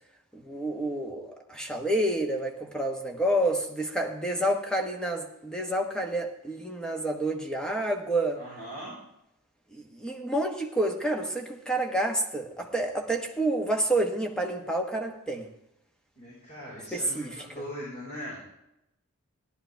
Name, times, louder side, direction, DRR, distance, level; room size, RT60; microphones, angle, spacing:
voice 1, 0.3-8.4 9.7-15.5 16.9-17.3, right 1 dB, 5° left, 2 dB, 1.3 m, -29 dB
voice 2, 8.3-8.9 16.2-18.5, equal, 35° left, -7 dB, 4.5 m, -40 dB
15.5 x 11.5 x 3.4 m, 0.83 s
head